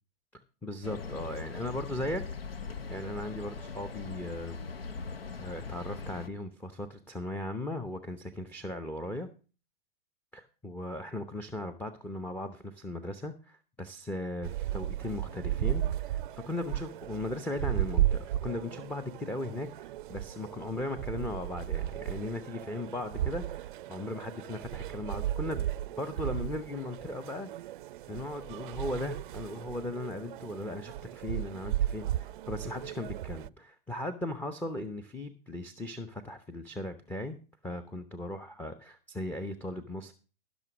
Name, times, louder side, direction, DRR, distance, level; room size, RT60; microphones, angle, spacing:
voice 1, 0.3-2.2 2.9-4.6 5.4-9.3 10.3-25.7 26.0-27.5 28.1-37.4 37.6-40.1, left 1 dB, 5° left, 8 dB, 0.8 m, -37 dB
sound 1, 0.8-6.3, left 5 dB, 85° left, 1.0 m, -40 dB
sound 2, 14.4-33.5, right 13 dB, 60° right, 0.5 m, -35 dB
15.0 x 6.2 x 6.0 m, 0.36 s
hypercardioid pair, 110°, 29 cm